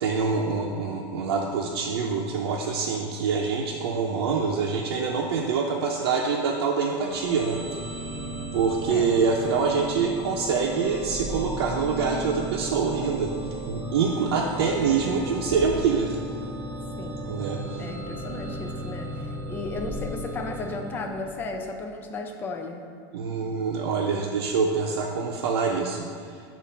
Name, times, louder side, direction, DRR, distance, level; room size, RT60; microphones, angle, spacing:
voice 1, 0.0-7.6 8.5-16.2 17.2-17.8 23.1-26.4, right 5 dB, 85° right, -2 dB, 0.6 m, -25 dB
sound 1, 7.0-21.7, right 1 dB, 20° right, 0.7 m, -35 dB
voice 2, 17.8-19.1 19.5-22.9, left 3 dB, 15° left, 3 dB, 0.4 m, -34 dB
7.0 x 2.5 x 5.6 m, 2.2 s
supercardioid pair, 170°, 13 cm